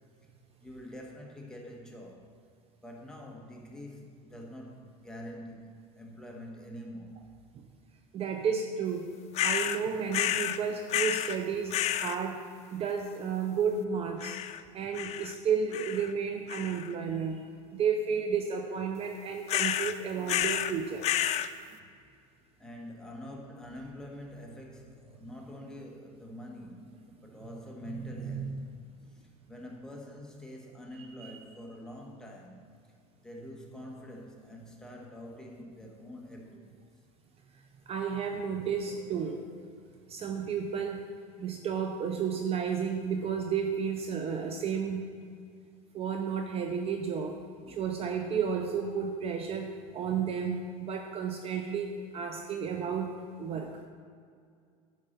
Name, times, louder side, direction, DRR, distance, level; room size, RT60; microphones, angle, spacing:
voice 1, 0.6-2.3 2.8-5.7 6.0-7.2 22.6-28.7 29.5-32.7 33.2-36.9 47.6-47.9, equal, 5° left, 1.4 m, -45 dB
voice 2, 8.1-9.1 9.4-12.4 12.7-14.4 14.7-17.4 17.7-21.1 27.9-28.5 31.0-31.4 37.9-39.5 40.1-41.0 41.4-45.1 45.9-47.4 47.7-53.1 53.4-53.7, right 6 dB, 35° right, 0.6 m, -32 dB
sound 1, 9.3-9.8 10.1-10.6 10.9-11.4 11.7-12.2 14.2-14.6 14.9-15.3 15.7-16.1 16.5-16.9 19.5-19.9 20.3-20.7 21.0-21.5, left 11 dB, 40° left, 0.4 m, -30 dB
10.0 x 4.6 x 6.6 m
supercardioid pair, 130°, 17 cm